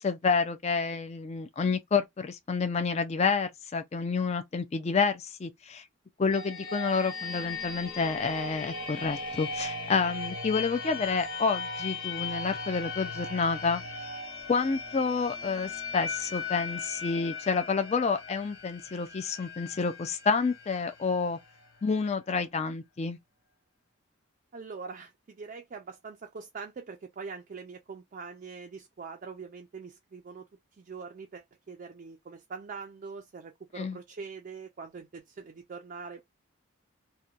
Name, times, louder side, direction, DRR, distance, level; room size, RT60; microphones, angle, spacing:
voice 1, 0.0-5.8 6.2-13.8 14.5-21.4 21.8-23.2 33.8-34.0, left 5 dB, 30° left, 0.4 m, -29 dB
sound 1, 6.3-21.9, left 4 dB, 90° left, 0.9 m, -38 dB
voice 2, 24.5-30.5 30.8-36.2, right 5 dB, 40° right, 0.4 m, -43 dB
2.8 x 2.2 x 2.4 m
head